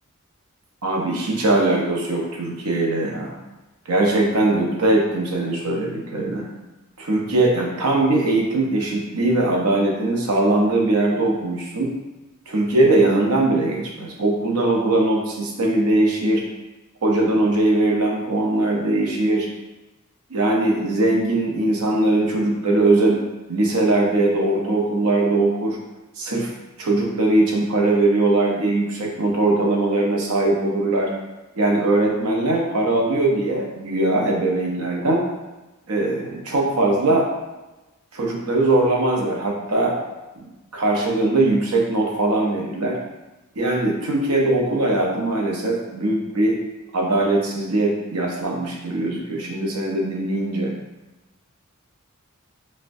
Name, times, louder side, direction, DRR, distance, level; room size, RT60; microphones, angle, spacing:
voice 1, 0.8-3.4 3.9-6.5 7.0-11.9 12.5-16.4 17.0-19.5 20.3-23.2 23.5-25.8 26.2-26.5 26.8-31.1 31.6-35.3 35.9-37.3 38.1-40.0 40.4-43.0 43.6-46.6 46.9-50.7, right 2 dB, 85° right, -1 dB, 0.8 m, -20 dB
5.4 x 2.2 x 2.7 m, 1.1 s
head